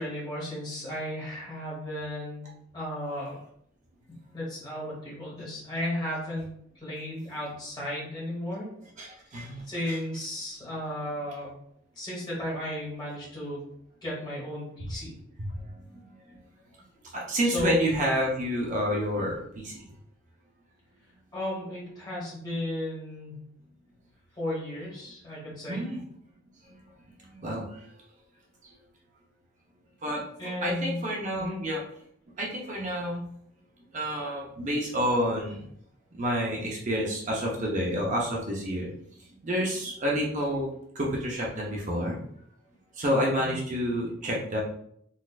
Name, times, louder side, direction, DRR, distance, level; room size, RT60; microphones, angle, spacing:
voice 1, 0.0-3.4 4.3-6.5 6.7-8.7 9.3-9.4 9.7-11.5 11.9-13.7 14.0-15.2 17.4-17.9 21.3-23.4 24.3-25.8 30.4-31.0 31.4-31.6 43.4-43.5, left 1 dB, 20° left, -6 dB, 1.4 m, -34 dB
voice 2, 9.3-10.0 15.4-16.0 17.1-19.8 25.7-26.0 27.2-27.6 30.0-30.3 30.6-31.8 32.4-33.2 33.9-35.7 36.2-38.9 39.4-40.7 40.9-42.2 43.0-44.6, equal, 35° right, -2 dB, 0.6 m, -29 dB
4.0 x 2.5 x 2.4 m, 0.69 s
head